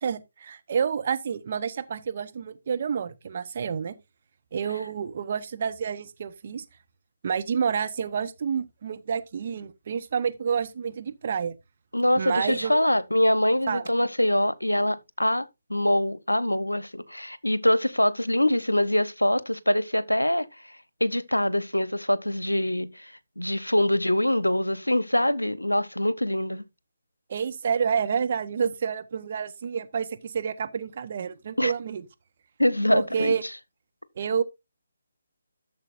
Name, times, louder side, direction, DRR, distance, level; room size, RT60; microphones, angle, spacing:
voice 1, 0.0-3.9 4.5-6.6 7.2-11.5 12.2-12.8 13.7-13.8 27.3-32.0 32.9-33.4 34.2-34.4, right 6 dB, 40° right, 0.9 m, -29 dB
voice 2, 11.9-20.5 21.0-26.6 31.6-31.7 32.6-33.4, left 1 dB, 85° left, 0.8 m, -24 dB
13.0 x 6.8 x 2.6 m
figure-of-eight pair, 145°, 0 cm